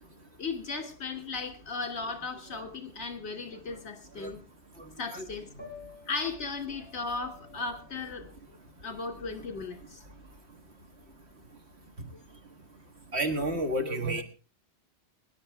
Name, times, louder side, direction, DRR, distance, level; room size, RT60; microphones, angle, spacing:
voice 1, 0.4-4.4 5.0-5.5 6.1-8.3 8.8-10.0, left 4 dB, 65° left, 2.9 m, -36 dB
Piano, 5.5-11.5, left 5 dB, 10° left, 4.2 m, -53 dB
voice 2, 13.1-14.2, right 1 dB, 70° right, 2.0 m, -30 dB
23.5 x 11.0 x 3.5 m
omnidirectional pair, 1.1 m